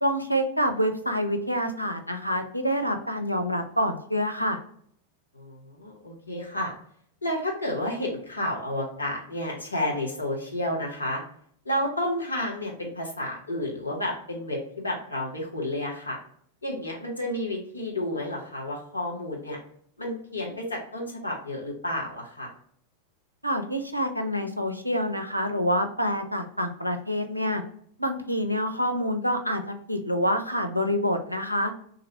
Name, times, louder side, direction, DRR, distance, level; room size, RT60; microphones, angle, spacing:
voice 1, 0.0-4.6 23.4-27.6 28.0-31.7, equal, 90° right, 5 dB, 0.4 m, -27 dB
voice 2, 5.3-6.7 7.2-11.2 11.6-16.2 16.6-19.6 20.0-22.5, left 1 dB, 80° left, -1 dB, 0.9 m, -31 dB
3.1 x 2.5 x 2.8 m, 0.63 s
figure-of-eight pair, 90°, 0 cm